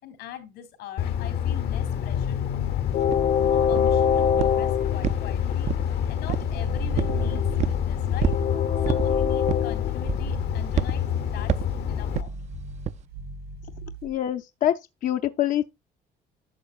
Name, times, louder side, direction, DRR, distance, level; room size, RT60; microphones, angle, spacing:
voice 1, 0.0-3.0 3.4-5.7 6.1-8.3 8.8-11.0 11.3-11.5 11.9-12.5, left 9 dB, 90° left, 3.4 m, -42 dB
Train, 1.0-12.2, left 8 dB, 70° left, 1.0 m, -25 dB
sound 1, 3.1-3.2 3.7-4.0 4.4-4.7 5.0-5.9 6.3-6.6 7.0-7.2 7.6-7.8 8.2-8.5 8.8-9.1 9.5-9.7 10.1-10.4 10.8-11.0 11.5-11.7 12.1-12.3 12.8-13.0, right 10 dB, 40° right, 0.4 m, -27 dB
sound 2, 6.1-8.6 9.0-9.5 9.9-14.2, right 4 dB, 90° right, 4.8 m, -37 dB
voice 2, 14.0-15.6, left 11 dB, 55° left, 0.6 m, -25 dB
11.5 x 6.9 x 2.4 m
cardioid pair, 110°, 17 cm